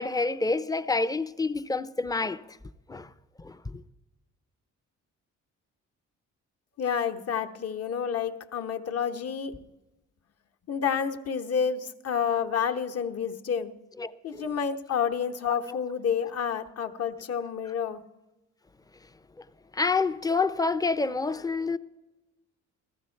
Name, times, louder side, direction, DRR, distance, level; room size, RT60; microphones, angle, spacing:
voice 1, 0.0-2.4 2.9-3.1 3.4-3.8 14.0-14.4 15.5-15.8 19.7-21.8, left 3 dB, 10° left, 0.5 m, -28 dB
voice 2, 6.8-9.6 10.7-13.7 14.2-18.0, left 7 dB, 55° left, 1.0 m, -29 dB
15.5 x 13.5 x 4.5 m
cardioid pair, 90°, 30 cm